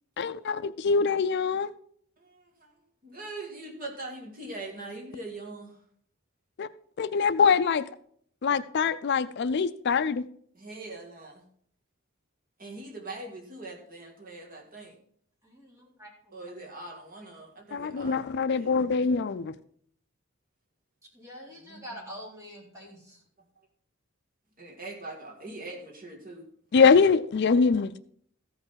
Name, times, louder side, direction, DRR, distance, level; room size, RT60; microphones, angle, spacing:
voice 1, 0.2-1.7 6.6-6.7 7.0-7.9 8.4-10.3 17.7-19.5 26.7-28.0, left 5 dB, 50° left, 0.4 m, -23 dB
voice 2, 2.2-2.8 3.0-5.8 10.5-11.4 12.6-15.0 16.3-19.2 21.6-22.1 24.6-26.5, right 2 dB, 40° right, 2.0 m, -42 dB
voice 3, 15.4-16.1 21.1-23.2, equal, 15° right, 3.7 m, -45 dB
14.5 x 5.6 x 5.7 m
head